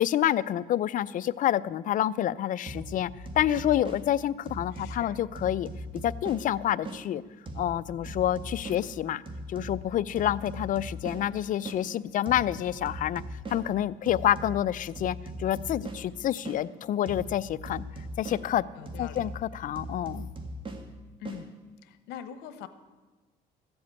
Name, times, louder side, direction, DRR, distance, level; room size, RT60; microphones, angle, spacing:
voice 1, 0.0-5.7 6.0-7.2 7.6-9.2 9.5-13.2 13.5-17.8 18.2-18.7 19.0-20.3, left 11 dB, 50° left, 17 dB, 0.5 m, -28 dB
sound 1, 2.6-7.0 7.4-11.8 12.2-16.6 17.0-21.4, equal, 30° right, 1.8 m, -40 dB
voice 2, 4.7-5.2 18.8-19.3 21.2-21.5 21.8-22.7, left 10 dB, 90° left, 11 dB, 1.0 m, -43 dB
14.0 x 7.9 x 8.3 m, 1.3 s
cardioid pair, 110°, 17 cm